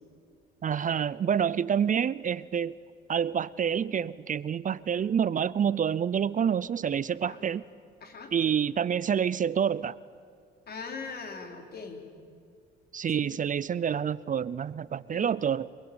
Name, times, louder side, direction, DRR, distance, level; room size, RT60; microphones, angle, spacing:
voice 1, 0.6-2.8 3.1-7.6 8.3-10.0 12.9-15.7, right 8 dB, 40° right, 19 dB, 0.5 m, -27 dB
voice 2, 8.0-8.3 10.7-12.0 13.1-13.3 15.1-15.3, left 4 dB, 50° left, 4 dB, 4.3 m, -41 dB
26.5 x 20.5 x 8.8 m, 2.2 s
cardioid pair, 90°, 20 cm